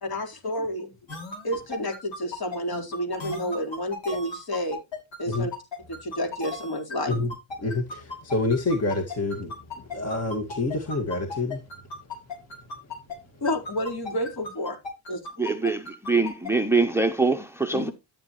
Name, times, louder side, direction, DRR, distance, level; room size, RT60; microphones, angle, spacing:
voice 1, 0.0-0.9 1.4-4.8 5.2-5.5 5.9-7.1 13.4-14.8 15.1-15.2 17.7-17.9, equal, 50° left, 4.4 m, -30 dB
sound 1, 1.1-13.2 13.4-16.5, left 3 dB, 65° left, 6.8 m, -36 dB
voice 2, 7.6-11.6, left 2 dB, 30° left, 2.0 m, -27 dB
voice 3, 15.4-17.9, right 3 dB, 5° right, 0.8 m, -24 dB
13.5 x 9.1 x 3.1 m
cardioid pair, 120°, 48 cm